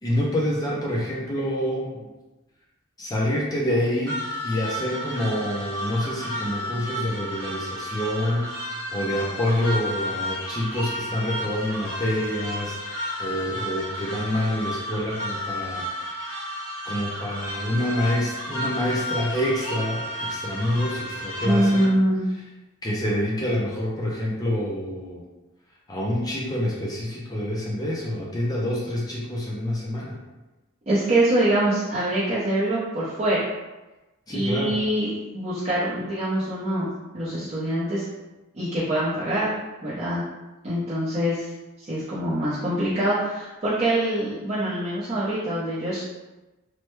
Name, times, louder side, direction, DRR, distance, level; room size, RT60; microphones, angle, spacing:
voice 1, 0.0-2.0 3.0-8.6 8.9-16.3 16.9-21.9 22.8-25.2 25.9-30.2 34.3-34.8, left 1 dB, 15° left, -4 dB, 0.4 m, -27 dB
sound 1, 4.1-21.8, equal, 60° left, 1.5 m, -32 dB
voice 2, 21.4-22.2 30.9-33.5 34.3-35.1 35.3-36.9 37.1-38.0 38.5-39.5 39.8-40.2 40.6-41.5 41.8-46.1, right 1 dB, 30° right, -12 dB, 0.6 m, -24 dB
3.2 x 2.1 x 3.0 m, 1.1 s
head